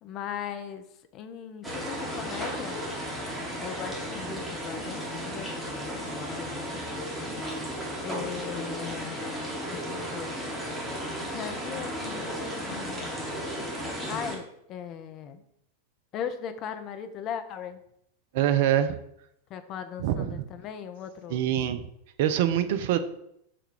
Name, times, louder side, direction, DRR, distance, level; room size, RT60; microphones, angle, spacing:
voice 1, 0.0-0.8 1.1-2.8 3.6-6.8 8.0-9.1 9.7-10.3 11.2-13.3 14.1-15.4 16.1-17.8 19.5-21.4, left 8 dB, 35° left, 9 dB, 0.3 m, -38 dB
sound 1, 1.6-14.4, equal, 10° right, 0.9 m, -34 dB
voice 2, 18.3-19.0 20.0-20.4 21.3-21.8 22.2-23.0, right 11 dB, 50° right, 10 dB, 0.3 m, -24 dB
3.6 x 2.2 x 4.4 m, 0.75 s
figure-of-eight pair, 90°, 0 cm